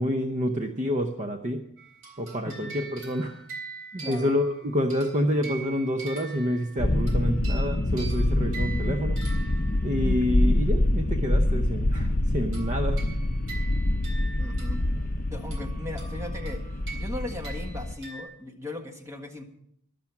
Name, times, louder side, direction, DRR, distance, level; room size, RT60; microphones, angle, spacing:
voice 1, 0.0-1.6 2.2-3.4 3.9-9.2 9.8-13.0, equal, 35° right, 5 dB, 0.8 m, -28 dB
sound 1, 1.8-10.3 12.5-15.1 15.4-18.2, right 4 dB, 65° right, 3.4 m, -44 dB
voice 2, 4.0-4.3 14.4-14.8 15.3-16.6 16.9-19.4, left 1 dB, 15° right, 4 dB, 1.6 m, -37 dB
sound 2, 6.8-17.9, left 1 dB, 40° left, 0.7 m, -26 dB
13.0 x 11.5 x 5.9 m, 0.73 s
head